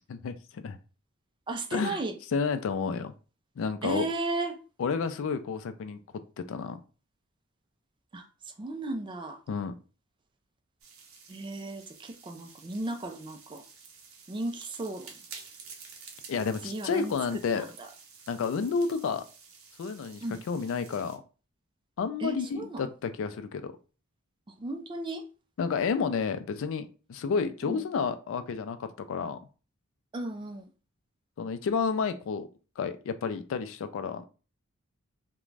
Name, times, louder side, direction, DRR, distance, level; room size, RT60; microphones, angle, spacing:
voice 1, 0.1-0.8 1.7-2.0 2.3-3.1 3.6-4.1 4.8-6.0 6.5-6.8 9.5-9.7 16.3-17.7 18.3-19.2 19.8-20.2 20.5-21.2 22.0-23.7 25.6-29.4 31.4-32.5 32.8-34.2, left 5 dB, 65° left, 0.3 m, -30 dB
voice 2, 1.5-2.2 3.8-4.6 8.1-9.4 11.3-13.6 14.3-15.1 16.6-17.1 17.5-17.9 20.2-20.4 22.2-22.9 24.5-25.2 27.6-27.8 30.1-30.7, right 2 dB, 25° right, 0.4 m, -35 dB
sound 1, 10.8-21.2, right 5 dB, 70° right, 0.6 m, -51 dB
2.5 x 2.2 x 3.1 m
head